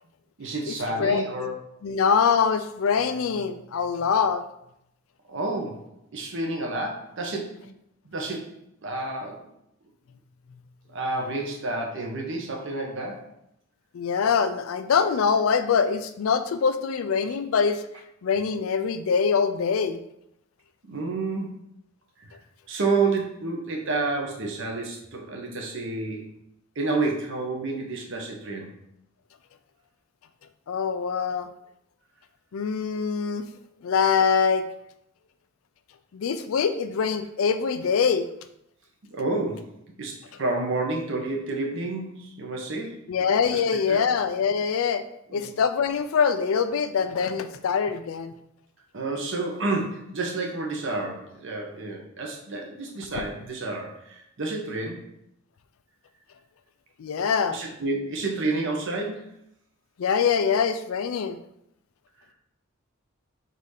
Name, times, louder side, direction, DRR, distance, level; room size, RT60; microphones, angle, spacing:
voice 1, 0.4-1.6 5.3-7.7 8.0-8.5 8.8-9.5 10.9-13.2 20.8-21.6 22.7-26.3 26.8-28.7 39.1-39.7 40.0-43.0 43.5-43.6 43.9-44.0 45.3-45.5 48.9-55.0 57.5-59.3, right 3 dB, 65° right, 1 dB, 0.9 m, -30 dB
voice 2, 1.8-4.4 13.9-17.8 18.2-20.0 30.7-31.5 32.5-33.4 33.8-34.7 36.1-38.3 43.1-45.0 45.3-48.3 57.0-57.6 60.0-61.4, left 6 dB, 80° left, 11 dB, 0.4 m, -24 dB
4.0 x 2.7 x 4.8 m, 0.78 s
head